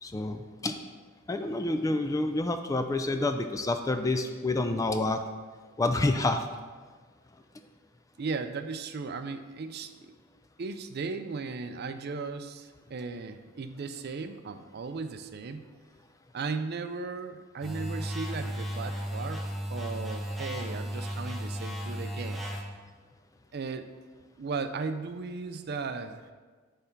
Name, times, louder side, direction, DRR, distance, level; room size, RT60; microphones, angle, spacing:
voice 1, 0.0-0.8 1.3-5.2 5.8-6.5, left 2 dB, 15° left, 7 dB, 0.3 m, -28 dB
voice 2, 8.2-10.1 10.6-15.6 16.3-19.4 19.7-22.4 23.5-23.9 24.4-26.2, right 4 dB, 50° right, 8 dB, 0.4 m, -36 dB
sound 1, 17.6-22.6, equal, ahead, 0.8 m, -35 dB
8.2 x 3.4 x 5.7 m, 1.4 s
head